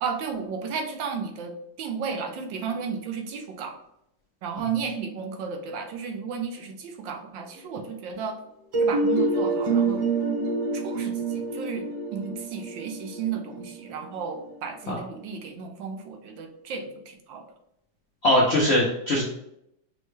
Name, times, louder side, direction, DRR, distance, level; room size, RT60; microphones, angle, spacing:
voice 1, 0.0-3.8 4.4-8.4 8.7-10.0 10.7-17.5, right 6 dB, 80° right, 4 dB, 1.4 m, -33 dB
sound 1, 8.7-14.5, right 3 dB, 50° right, 1.1 m, -27 dB
voice 2, 18.2-19.3, left 1 dB, 70° left, -2 dB, 0.6 m, -21 dB
6.2 x 2.2 x 3.1 m, 0.79 s
omnidirectional pair, 2.0 m